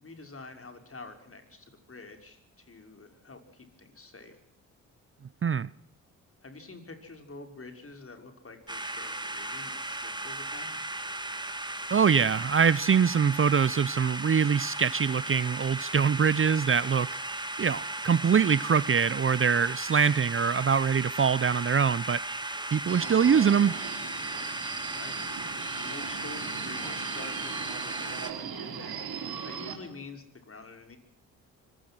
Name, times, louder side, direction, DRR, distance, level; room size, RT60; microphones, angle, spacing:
voice 1, 0.0-4.4 6.4-10.7 24.9-25.4 25.7-31.0, left 3 dB, 35° left, 6.0 m, -47 dB
sound 1, 8.7-28.3, right 2 dB, 10° right, 3.1 m, -36 dB
voice 2, 11.9-17.1 17.6-22.2 22.7-23.8, right 6 dB, 35° right, 0.7 m, -24 dB
Subway metro underground, 22.9-29.7, right 7 dB, 70° right, 4.2 m, -39 dB
24.5 x 17.5 x 6.3 m
supercardioid pair, 50°, 38 cm